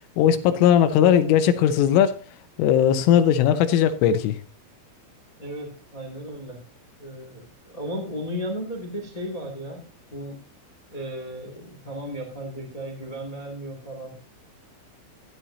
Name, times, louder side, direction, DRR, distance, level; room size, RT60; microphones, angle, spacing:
voice 1, 0.2-2.2 2.6-4.4, left 9 dB, 80° left, 3.4 m, -18 dB
voice 2, 5.4-6.6 7.0-9.8 10.1-10.4 10.9-14.2, equal, 25° left, 0.8 m, -35 dB
13.0 x 12.5 x 2.9 m
omnidirectional pair, 5.9 m